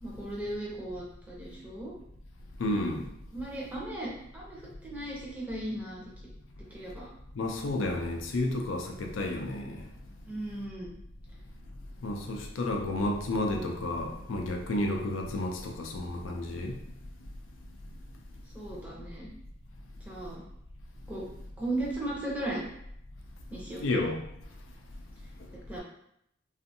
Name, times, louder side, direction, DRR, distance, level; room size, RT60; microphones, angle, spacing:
voice 1, 0.0-1.9 3.3-6.0 6.7-7.1 10.2-10.9 18.5-19.3 20.0-20.4 21.1-21.2 21.6-22.6 23.5-23.8 25.7-25.8, right 1 dB, 10° right, -5 dB, 0.6 m, -36 dB
voice 2, 2.6-3.1 7.4-9.8 12.0-16.7 23.8-24.2, left 2 dB, 75° left, 2 dB, 0.4 m, -31 dB
2.6 x 2.4 x 2.6 m, 0.75 s
head